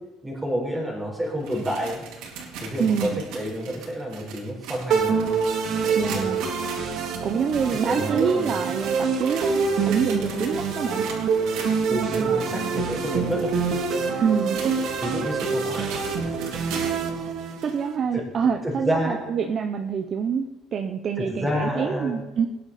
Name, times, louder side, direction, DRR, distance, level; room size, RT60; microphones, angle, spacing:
voice 1, 0.2-2.0 2.6-5.2 5.8-6.4 7.8-8.5 11.9-13.6 15.0-16.1 16.7-17.0 18.1-18.2 18.6-19.2 21.2-22.1, equal, 5° right, -2 dB, 4.3 m, -29 dB
sound 1, 1.2-17.1 17.6-17.7 18.4-18.5 19.4-19.5, right 5 dB, 85° right, 3.4 m, -40 dB
voice 2, 2.8-3.2 6.0-6.4 7.2-11.0 11.9-12.8 14.2-14.7 16.7-17.0 17.2-17.3 17.6-22.5, right 6 dB, 35° right, 6 dB, 0.7 m, -26 dB
sound 2, 4.9-17.9, right 5 dB, 55° right, 2.4 m, -26 dB
20.0 x 10.5 x 4.2 m, 1.1 s
cardioid pair, 165°, 0 cm